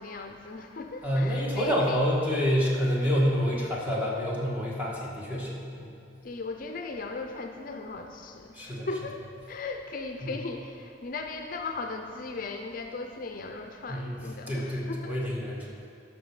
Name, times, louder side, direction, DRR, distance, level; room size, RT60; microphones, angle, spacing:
voice 1, 0.0-2.0 6.2-9.2 9.5-15.2, left 3 dB, 50° left, 4 dB, 0.5 m, -37 dB
voice 2, 1.0-5.9 8.5-8.9 10.2-10.3 13.9-14.2 14.5-15.7, equal, 10° right, -5 dB, 1.6 m, -28 dB
12.5 x 5.8 x 4.8 m, 2.4 s
head